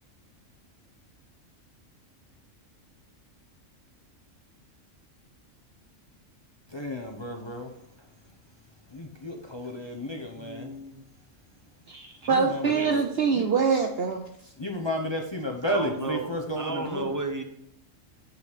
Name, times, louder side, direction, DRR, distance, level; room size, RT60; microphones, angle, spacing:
voice 1, 6.7-7.7 8.9-10.7 12.3-12.9 13.3-13.5 14.6-17.1, equal, 25° left, 2 dB, 0.7 m, -32 dB
voice 2, 10.3-11.1 12.6-13.3 15.6-16.3 16.5-17.4, right 2 dB, 15° right, 5 dB, 0.8 m, -34 dB
voice 3, 11.9-14.2, right 5 dB, 60° right, 4 dB, 0.8 m, -24 dB
8.2 x 4.0 x 6.1 m, 0.76 s
omnidirectional pair, 1.3 m